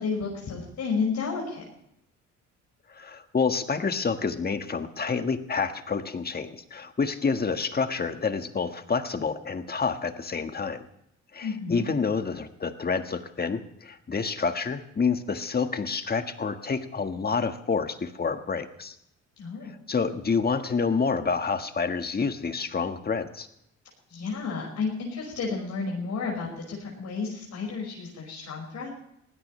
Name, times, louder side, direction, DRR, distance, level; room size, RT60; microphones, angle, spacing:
voice 1, 0.0-1.7 11.4-11.9 19.4-19.7 24.1-28.9, left 4 dB, 65° left, -2 dB, 5.6 m, -31 dB
voice 2, 2.9-10.9 11.3-18.9 19.9-23.5, left 5 dB, 30° left, 8 dB, 1.6 m, -28 dB
21.5 x 16.5 x 3.3 m, 0.76 s
cardioid pair, 90°, 30 cm